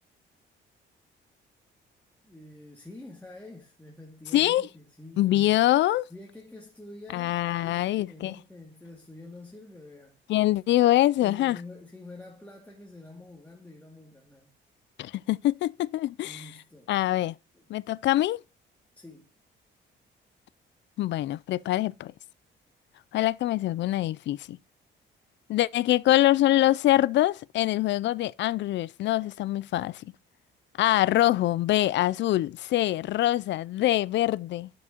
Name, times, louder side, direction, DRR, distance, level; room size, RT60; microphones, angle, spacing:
voice 1, 2.2-5.3 6.1-7.3 7.6-10.2 11.2-14.5 16.2-16.9 17.5-17.6 19.0-19.3, left 2 dB, 10° left, 2.1 m, -47 dB
voice 2, 4.3-4.7 5.2-6.0 7.1-8.4 10.3-11.6 15.0-16.4 16.9-17.3 17.7-18.4 21.0-22.1 23.1-24.6 25.5-30.1 30.8-34.7, left 14 dB, 65° left, 0.4 m, -24 dB
11.0 x 6.0 x 2.9 m
cardioid pair, 90°, 20 cm